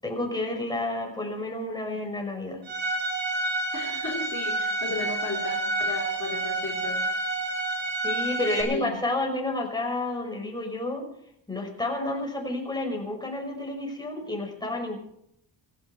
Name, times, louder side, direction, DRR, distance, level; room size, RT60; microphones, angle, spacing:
voice 1, 0.0-2.6 8.0-11.0 11.5-15.0, left 2 dB, 10° left, 0 dB, 5.7 m, -30 dB
Bowed string instrument, 2.7-8.6, right 2 dB, 70° right, 5.1 m, -29 dB
voice 2, 3.7-7.0 8.6-8.9, left 3 dB, 35° left, -3 dB, 4.1 m, -34 dB
17.0 x 17.0 x 4.6 m, 0.72 s
cardioid pair, 105°, 47 cm